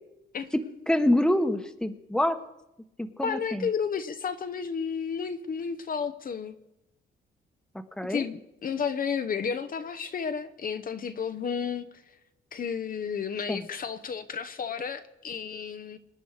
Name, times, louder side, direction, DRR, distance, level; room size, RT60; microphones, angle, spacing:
voice 1, 0.9-2.4 3.0-3.7 8.0-8.2 13.5-13.7, left 1 dB, 5° left, 8 dB, 1.3 m, -26 dB
voice 2, 3.2-6.6 8.1-11.9 12.5-16.0, left 6 dB, 45° left, 9 dB, 1.0 m, -32 dB
24.5 x 10.0 x 5.0 m, 0.87 s
cardioid pair, 90°, 20 cm